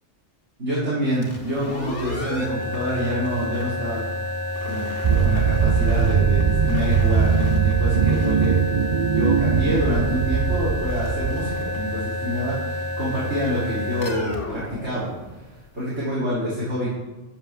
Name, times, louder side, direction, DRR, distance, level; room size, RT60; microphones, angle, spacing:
voice 1, 0.6-4.0 4.6-4.8 5.2-8.8 9.1-15.1 15.7-16.9, equal, 80° right, -10 dB, 4.7 m, -27 dB
sound 1, 1.1-15.8, left 1 dB, 80° left, 2.7 m, -29 dB
sound 2, 5.0-11.8, right 7 dB, 45° right, 0.7 m, -21 dB
12.5 x 7.5 x 7.5 m, 1.1 s
omnidirectional pair, 1.2 m